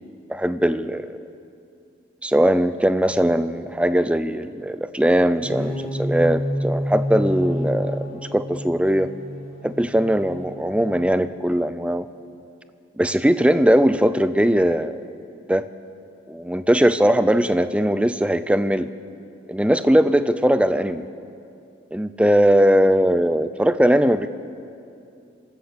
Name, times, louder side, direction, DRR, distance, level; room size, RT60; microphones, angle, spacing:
voice 1, 0.3-1.2 2.2-9.1 9.6-12.1 13.0-15.0 15.5-15.7 16.3-18.9 19.5-21.1 21.9-24.3, equal, 5° right, 12 dB, 0.5 m, -20 dB
sound 1, 5.3-11.2, equal, 35° left, 7.2 m, -29 dB
25.5 x 13.5 x 8.0 m, 2.6 s
head